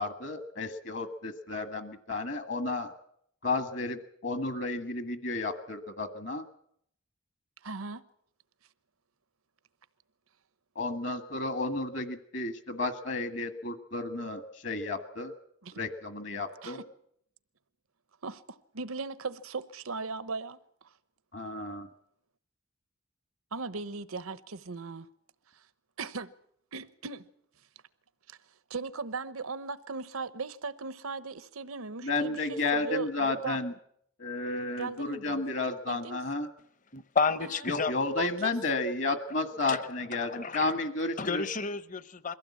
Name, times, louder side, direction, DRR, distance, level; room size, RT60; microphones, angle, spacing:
voice 1, 0.0-2.9 3.4-6.4 10.7-15.3 15.7-16.8 21.3-21.9 32.0-33.7 34.2-36.5 37.7-41.4, left 3 dB, 60° left, 1.5 m, -32 dB
voice 2, 7.6-8.0 15.6-15.8 16.6-16.8 18.2-20.6 23.5-25.1 25.5-25.6 26.0-26.3 26.7-27.3 28.3-28.4 28.7-33.6 34.8-35.4 35.9-36.2 37.5-37.6 38.2-38.5, right 4 dB, 90° right, 1.0 m, -38 dB
voice 3, 36.9-37.9 39.7-39.8 40.1-40.7 41.2-42.3, left 4 dB, 35° left, 0.8 m, -31 dB
22.5 x 15.5 x 8.5 m
head